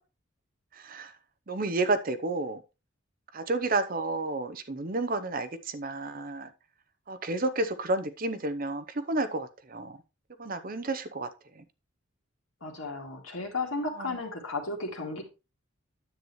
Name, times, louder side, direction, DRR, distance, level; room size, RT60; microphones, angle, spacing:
voice 1, 0.8-1.1 1.5-2.6 3.3-6.5 7.1-10.0 10.4-11.3 14.0-14.1, right 2 dB, 40° right, 0.7 m, -31 dB
voice 2, 12.6-15.2, left 3 dB, 75° left, 2.5 m, -34 dB
9.9 x 7.9 x 3.1 m
head